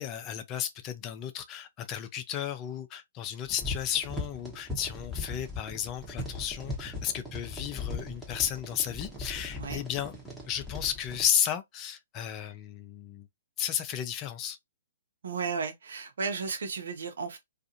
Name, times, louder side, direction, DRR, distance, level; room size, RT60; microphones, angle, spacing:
voice 1, 0.0-10.1 10.5-13.3 13.6-14.6, left 9 dB, 30° left, 0.5 m, -33 dB
sound 1, 3.5-11.3, left 2 dB, ahead, 1.0 m, -39 dB
voice 2, 15.2-17.4, right 5 dB, 70° right, 0.9 m, -34 dB
2.5 x 2.4 x 2.7 m
hypercardioid pair, 125°, 0 cm